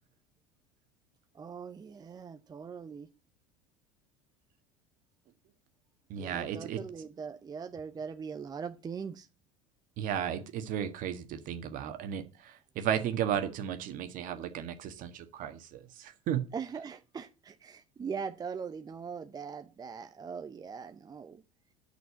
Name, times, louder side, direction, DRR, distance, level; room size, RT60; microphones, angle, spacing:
voice 1, 1.3-3.1 6.2-9.3 16.5-21.4, right 6 dB, 25° right, 0.7 m, -41 dB
voice 2, 6.1-6.8 10.0-16.4, right 9 dB, 55° right, 1.5 m, -34 dB
8.5 x 6.2 x 8.1 m
hypercardioid pair, 80°, 17 cm